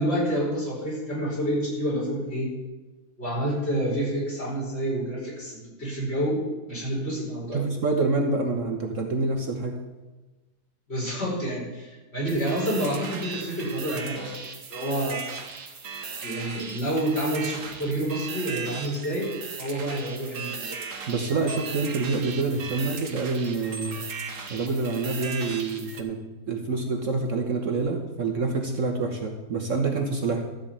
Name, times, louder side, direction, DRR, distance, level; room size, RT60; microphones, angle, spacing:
voice 1, 0.0-2.5 3.2-6.4 6.7-7.6 10.9-14.3 14.7-15.2 16.2-19.3 19.6-20.8, right 1 dB, 40° left, -6 dB, 5.7 m, -28 dB
voice 2, 7.5-9.8 21.1-24.0 24.5-26.2 26.5-30.4, right 3 dB, 55° right, 3 dB, 1.4 m, -27 dB
sound 1, 12.3-26.0, right 5 dB, 75° right, 1.9 m, -37 dB
13.5 x 5.2 x 8.7 m, 1.1 s
omnidirectional pair, 1.7 m